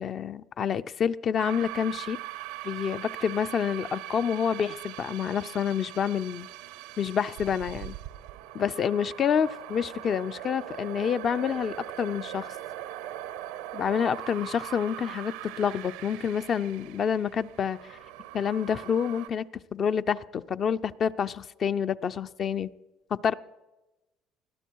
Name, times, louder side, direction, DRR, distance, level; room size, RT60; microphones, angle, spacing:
voice 1, 0.0-2.2 2.6-6.5 7.0-7.9 8.5-12.5 13.7-18.0 18.3-19.5 19.7-22.7 23.1-23.4, left 7 dB, 45° left, 12 dB, 0.5 m, -28 dB
sound 1, 1.4-19.3, right 14 dB, 85° right, 0.8 m, -41 dB
20.5 x 12.5 x 4.6 m, 1.1 s
supercardioid pair, 80°, 0 cm